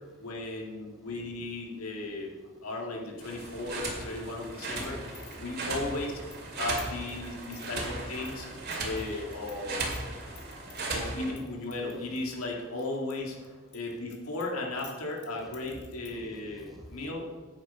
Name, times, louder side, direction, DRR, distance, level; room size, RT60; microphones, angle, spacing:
voice 1, 0.2-2.3 2.6-5.1 5.4-6.2 6.6-8.5 8.8-9.9 10.9-13.4 13.7-17.4, left 2 dB, 85° left, -1 dB, 2.0 m, -36 dB
sound 1, 3.2-11.3, right 2 dB, 50° right, 2.4 m, -37 dB
voice 2, 3.4-5.7 6.5-6.7 7.2-7.8 8.2-10.8 11.7-12.4 13.4-13.6 15.4-17.1, equal, ahead, -4 dB, 2.4 m, -54 dB
sound 2, 4.4-9.6 9.8-10.8 11.4-13.1 13.4-16.2, left 9 dB, 60° left, 1.8 m, -52 dB
9.2 x 8.7 x 5.2 m, 1.4 s
head